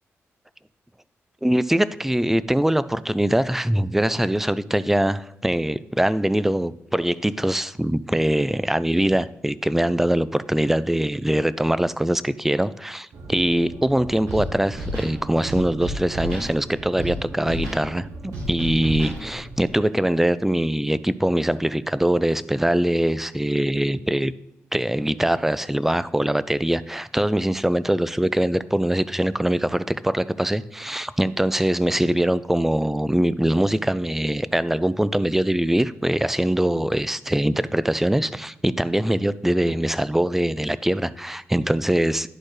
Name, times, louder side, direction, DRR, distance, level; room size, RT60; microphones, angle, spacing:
voice 1, 1.4-24.3 24.7-42.3, right 1 dB, 5° right, 16 dB, 0.4 m, -22 dB
sound 1, 13.1-19.7, right 2 dB, 70° right, 1.1 m, -40 dB
Scratching (performance technique), 14.3-14.4 14.7-15.1 15.5-16.5 17.0-17.1 17.4-17.8 18.3-19.2, equal, 90° right, 2.4 m, -30 dB
11.5 x 4.2 x 3.2 m, 0.86 s
supercardioid pair, 55°, 6 cm